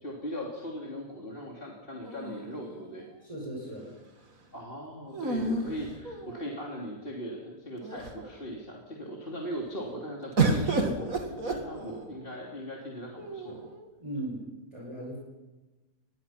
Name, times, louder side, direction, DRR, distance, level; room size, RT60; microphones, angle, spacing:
voice 1, 0.0-3.1 4.5-13.6, equal, 35° left, -2 dB, 3.2 m, -39 dB
sound 1, 2.0-3.2 5.1-6.7 7.4-7.5 7.8-8.4 10.4-12.2 13.2-13.9, right 3 dB, 60° right, 2.7 m, -31 dB
voice 2, 3.2-3.8 14.0-14.5 14.7-15.2, right 1 dB, 20° right, -4 dB, 6.0 m, -37 dB
25.5 x 21.0 x 5.8 m, 1.1 s
omnidirectional pair, 1.6 m